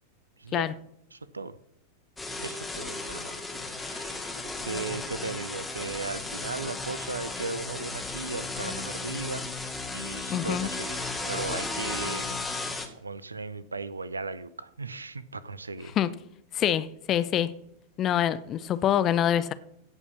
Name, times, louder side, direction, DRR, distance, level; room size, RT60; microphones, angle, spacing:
voice 1, 0.4-0.7 1.1-1.6 2.4-3.4 3.8-4.3 4.6-9.4 9.9-11.0 11.3-12.4 13.0-15.9, right 3 dB, 80° right, 0.7 m, -37 dB
sound 1, 2.2-12.9, left 3 dB, 5° left, 2.3 m, -35 dB
voice 2, 10.3-10.7 16.0-16.1 16.5-17.5 18.0-19.5, left 10 dB, 30° left, 0.8 m, -25 dB
16.5 x 5.4 x 7.3 m
figure-of-eight pair, 90°, 0 cm